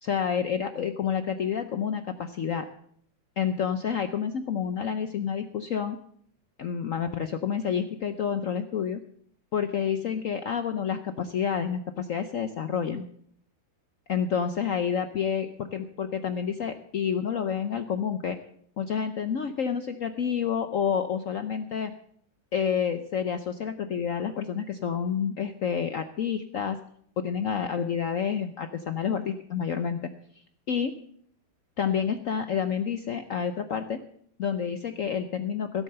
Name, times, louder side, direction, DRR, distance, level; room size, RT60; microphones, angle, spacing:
voice 1, 0.0-2.7 3.4-6.0 6.6-9.0 9.5-13.0 14.1-18.4 18.8-21.9 22.5-26.8 27.2-30.1 30.7-31.0 31.8-34.0 34.4-35.8, left 7 dB, 60° left, 8 dB, 0.8 m, -29 dB
17.0 x 7.7 x 6.6 m, 0.64 s
omnidirectional pair, 2.1 m